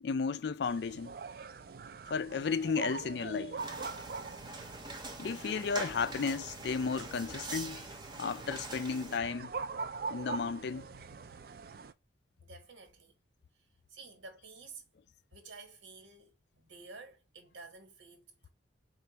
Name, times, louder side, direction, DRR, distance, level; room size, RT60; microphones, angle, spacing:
voice 1, 0.0-1.1 2.1-3.6 5.2-7.9 8.2-9.5 10.1-10.9, left 5 dB, 60° left, 0.4 m, -33 dB
sound 1, 0.6-11.9, right 4 dB, 50° right, 0.4 m, -44 dB
sound 2, 3.6-9.2, right 2 dB, 25° right, 0.7 m, -44 dB
voice 2, 12.4-13.1 13.9-14.8 15.3-18.5, right 3 dB, 80° right, 1.4 m, -52 dB
4.5 x 2.5 x 4.0 m
head